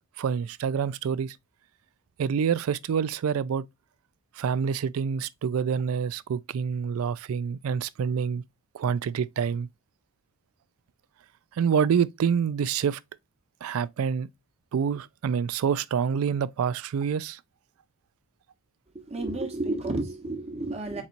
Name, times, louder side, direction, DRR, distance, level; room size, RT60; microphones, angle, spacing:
voice 1, 0.2-1.3 2.2-3.6 4.4-8.4 8.7-9.7 11.6-13.0 13.6-14.3 14.7-17.4, right 7 dB, 75° right, 0.3 m, -27 dB
voice 2, 18.9-21.0, right 2 dB, 30° right, 1.0 m, -31 dB
4.3 x 4.1 x 2.5 m
head